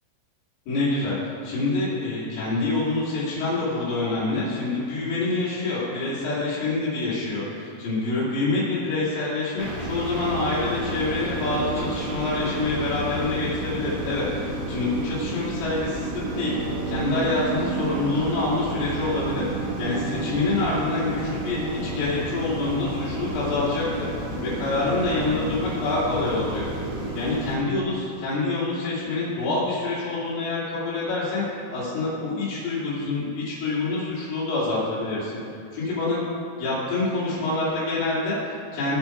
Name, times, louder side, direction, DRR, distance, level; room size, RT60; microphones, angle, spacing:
voice 1, 0.7-1.2 1.4-16.6 16.9-19.4 19.8-24.1 24.4-26.8 27.1-31.5 31.7-35.4 35.7-36.2 36.6-39.0, left 3 dB, 90° left, -10 dB, 5.2 m, -26 dB
sound 1, 9.6-27.6, right 2 dB, 85° right, 5.7 m, -30 dB
18.0 x 6.3 x 5.0 m, 2.4 s
omnidirectional pair, 5.5 m